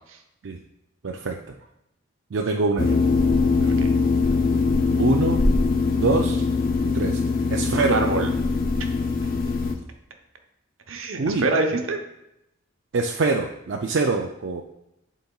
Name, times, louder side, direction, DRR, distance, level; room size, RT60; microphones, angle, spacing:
voice 1, 1.0-1.4 2.3-3.0 5.0-5.4 6.0-6.4 6.9-7.2 7.5-8.0 11.2-11.4 12.9-14.6, right 3 dB, 60° right, 1 dB, 0.4 m, -24 dB
sound 1, 2.8-9.7, left 4 dB, 45° left, 0.6 m, -22 dB
voice 2, 3.6-3.9 7.9-8.3 10.9-12.0, right 3 dB, 80° right, 4 dB, 0.9 m, -25 dB
11.5 x 4.1 x 2.3 m, 0.86 s
head